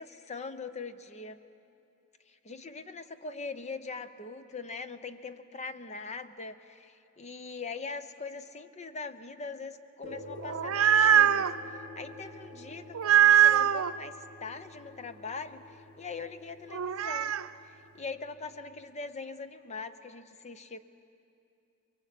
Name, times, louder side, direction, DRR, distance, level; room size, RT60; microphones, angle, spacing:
voice 1, 0.0-1.4 2.3-17.3 17.6-20.8, left 4 dB, 35° left, 11 dB, 0.9 m, -42 dB
sound 1, 10.0-18.8, left 2 dB, 75° left, 3.0 m, -48 dB
sound 2, 10.4-11.5 12.9-13.9 16.7-17.4, right 9 dB, 85° right, 0.5 m, -22 dB
24.5 x 22.5 x 8.3 m, 2.6 s
head